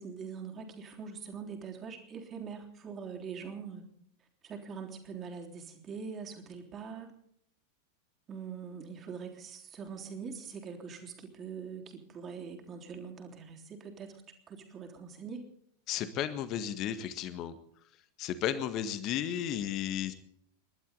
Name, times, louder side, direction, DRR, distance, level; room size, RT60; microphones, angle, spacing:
voice 1, 0.0-3.9 4.4-7.2 8.3-14.2 14.5-15.4, right 6 dB, 25° right, 2 dB, 3.5 m, -43 dB
voice 2, 15.9-17.6 18.2-20.1, left 10 dB, 35° left, 11 dB, 1.7 m, -33 dB
29.5 x 12.0 x 4.1 m, 0.70 s
figure-of-eight pair, 90°, 0 cm